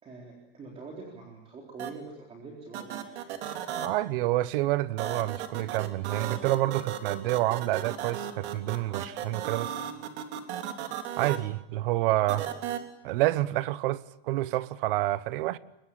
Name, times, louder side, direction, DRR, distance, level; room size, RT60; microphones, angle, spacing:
voice 1, 0.0-3.3 12.3-12.5, right 3 dB, 20° right, 3.8 m, -45 dB
sound 1, 1.8-1.9 2.7-3.9 5.0-11.4 12.3-12.8, right 10 dB, 90° right, 3.5 m, -34 dB
voice 2, 3.8-9.7 11.2-12.5 13.0-15.6, right 16 dB, 55° right, 1.1 m, -28 dB
25.0 x 22.5 x 8.7 m
supercardioid pair, 175°, 33 cm